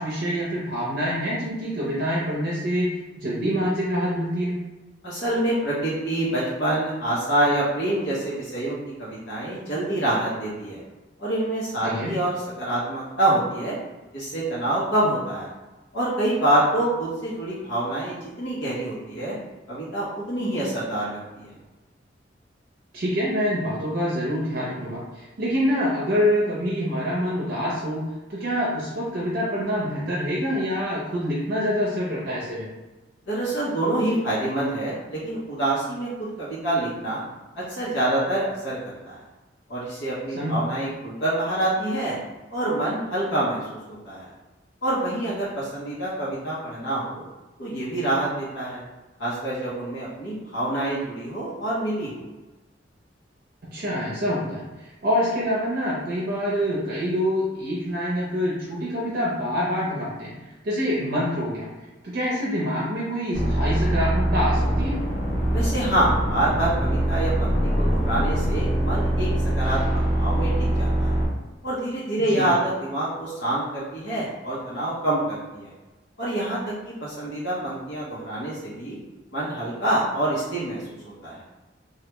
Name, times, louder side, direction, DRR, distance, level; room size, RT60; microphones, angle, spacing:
voice 1, 0.0-2.9 3.2-4.5 11.8-12.1 22.9-28.0 28.3-32.7 40.4-40.5 53.7-60.3 60.6-61.7 62.0-64.9 72.3-72.5, equal, 55° right, -5 dB, 0.6 m, -26 dB
voice 2, 5.0-10.8 11.2-13.8 14.1-15.5 15.9-19.4 19.7-21.5 33.3-37.2 37.6-38.8 39.0-39.2 39.7-42.2 42.5-44.3 44.8-47.2 47.6-48.8 49.2-52.2 65.5-69.3 69.6-71.1 71.6-75.7 76.2-79.0 79.3-81.4, right 1 dB, 70° left, -8 dB, 0.9 m, -26 dB
sound 1, 63.3-71.3, right 1 dB, 45° left, 0.9 m, -23 dB
3.3 x 2.3 x 3.0 m, 1.1 s
head